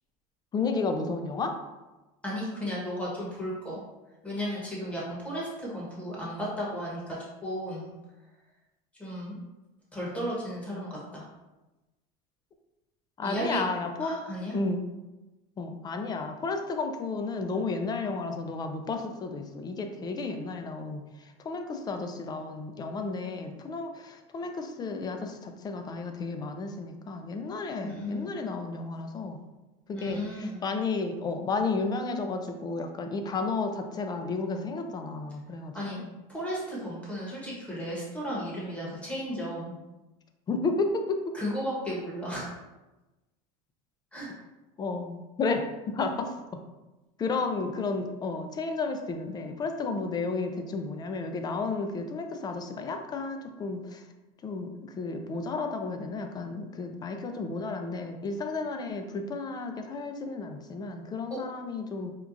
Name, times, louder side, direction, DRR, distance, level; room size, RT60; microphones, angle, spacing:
voice 1, 0.5-1.6 13.2-14.2 14.5-14.8 15.6-29.4 29.9-35.8 36.0-36.1 40.5-41.4 44.8-46.6 47.2-54.0 54.4-62.1, left 3 dB, 25° left, 5 dB, 0.4 m, -32 dB
voice 2, 2.2-3.8 4.2-7.9 9.0-9.4 9.9-11.3 13.2-13.6 14.0-14.5 27.8-28.3 29.9-30.7 35.7-36.0 36.3-39.8 41.3-42.5 44.1-44.3 61.3-61.4, equal, 5° left, -5 dB, 1.2 m, -34 dB
4.4 x 2.3 x 2.6 m, 1.1 s
supercardioid pair, 120°, 17 cm